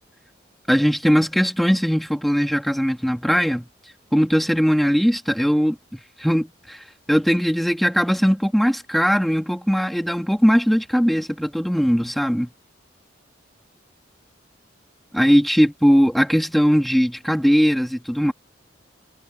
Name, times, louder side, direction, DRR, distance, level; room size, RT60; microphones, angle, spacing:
voice 1, 0.7-3.6 4.1-12.5 15.1-18.3, equal, ahead, 1.4 m, -19 dB
head